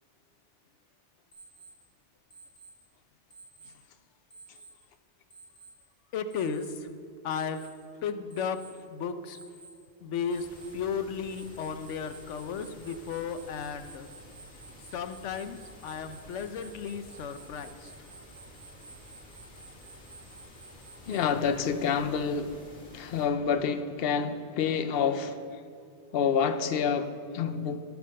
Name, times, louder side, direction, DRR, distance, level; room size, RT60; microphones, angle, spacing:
Alarm, 1.3-1.7 2.3-2.7 3.3-3.7 4.3-4.7 5.3-5.7 6.3-6.7 7.3-7.7 8.3-8.7 9.3-9.7 10.3-10.7 11.3-21.2, right 4 dB, 5° left, 2.9 m, -51 dB
voice 1, 6.1-6.9 7.2-7.7 8.0-8.6 8.9-9.4 10.0-10.5 10.7-14.1 14.9-15.6 15.8-17.9, left 6 dB, 85° left, 1.1 m, -34 dB
sound 1, 10.3-23.3, equal, 45° left, 2.5 m, -52 dB
voice 2, 21.1-22.6 22.9-25.4 26.1-27.8, left 6 dB, 60° left, 0.9 m, -28 dB
13.5 x 5.9 x 6.4 m
omnidirectional pair, 1.2 m